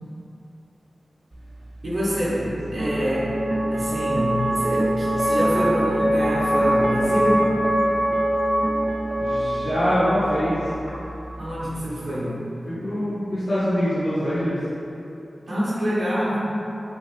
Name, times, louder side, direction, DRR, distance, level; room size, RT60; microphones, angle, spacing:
sound 1, 1.3-11.6, right 1 dB, 35° right, 0.4 m, -24 dB
voice 1, 1.8-2.4 2.7-3.3 3.7-7.5 11.4-12.4 15.5-16.4, equal, 85° right, -10 dB, 1.1 m, -26 dB
voice 2, 9.2-10.6 12.7-14.6, equal, 85° left, -16 dB, 1.4 m, -24 dB
5.1 x 2.4 x 3.3 m, 2.8 s
wide cardioid pair, 60°, 0 cm